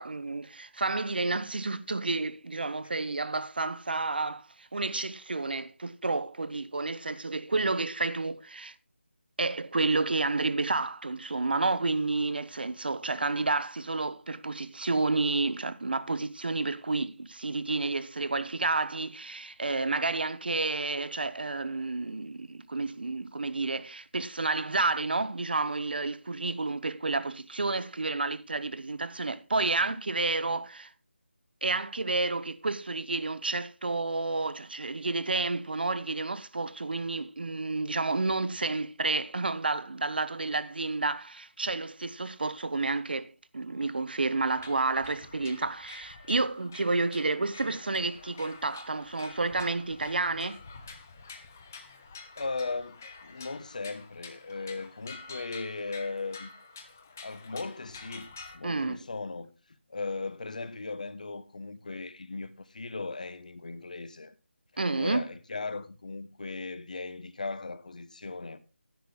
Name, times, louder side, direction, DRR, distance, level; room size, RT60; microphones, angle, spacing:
voice 1, 0.0-8.7 9.4-30.9 31.6-50.6 58.6-59.0 64.8-65.3, right 3 dB, 55° right, 0.9 m, -30 dB
sound 1, 44.6-58.6, left 4 dB, 10° left, 0.6 m, -48 dB
voice 2, 52.4-56.5 57.2-59.5 59.9-64.3 65.0-68.6, left 3 dB, 40° left, 1.0 m, -37 dB
11.5 x 10.5 x 3.6 m
figure-of-eight pair, 180°, 6 cm